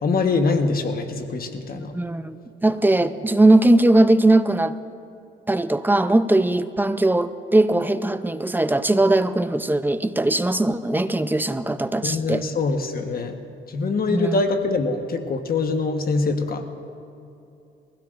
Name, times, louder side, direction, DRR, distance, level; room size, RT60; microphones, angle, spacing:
voice 1, 0.0-1.9 12.0-13.4 13.7-16.6, left 3 dB, 50° left, 5 dB, 1.2 m, -24 dB
voice 2, 1.7-2.4 2.6-4.7 5.5-12.4 14.1-14.4, right 2 dB, 10° right, 11 dB, 0.5 m, -19 dB
22.5 x 16.0 x 2.5 m, 2.7 s
cardioid pair, 90°, 20 cm